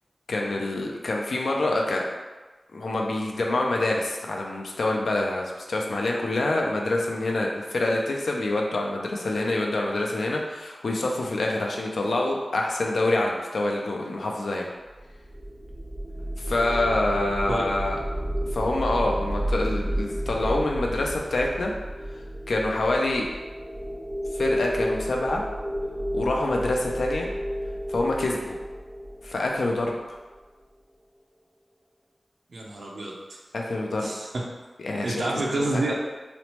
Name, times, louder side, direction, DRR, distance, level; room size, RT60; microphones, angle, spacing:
voice 1, 0.3-2.0 2.7-14.7 16.4-18.0 18.5-21.7 22.5-23.3 24.3-25.4 26.1-27.3 27.9-28.6 29.2-30.2 33.5-34.1 34.8-35.2 35.6-35.8, left 2 dB, 90° left, 0 dB, 0.3 m, -26 dB
sound 1, 14.9-30.1, equal, 35° right, 0.5 m, -31 dB
voice 2, 32.5-33.1 34.0-34.4 35.0-35.9, right 2 dB, 85° right, -2 dB, 0.5 m, -28 dB
3.0 x 2.0 x 2.9 m, 1.3 s
wide cardioid pair, 60°, 0 cm